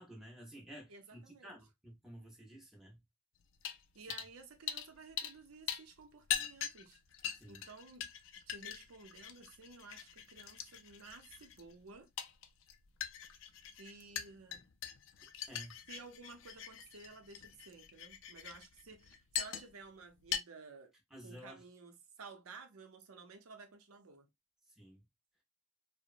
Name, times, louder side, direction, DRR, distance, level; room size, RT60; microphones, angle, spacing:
voice 1, 0.0-3.0 7.4-7.6 15.5-15.8 21.1-21.6 24.8-25.0, equal, ahead, 0.6 m, -52 dB
voice 2, 0.9-1.5 3.9-7.0 7.5-8.1 8.5-12.1 13.8-14.7 15.9-20.9 21.2-24.3, right 4 dB, 85° right, 0.6 m, -54 dB
sound 1, 3.6-3.8 4.1-4.3 4.7-5.4 5.7-19.9 20.2-20.4, left 9 dB, 60° left, 0.3 m, -42 dB
2.8 x 2.1 x 2.4 m
head